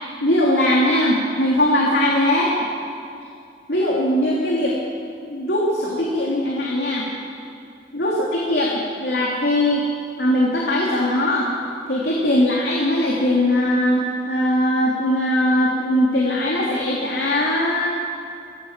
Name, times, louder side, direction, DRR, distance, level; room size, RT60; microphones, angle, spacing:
voice 1, 0.2-2.5 3.7-4.7 5.3-7.1 7.9-9.9 10.2-11.5 11.9-17.9, left 1 dB, 65° left, -3 dB, 3.2 m, -20 dB
24.5 x 17.5 x 7.5 m, 2.5 s
head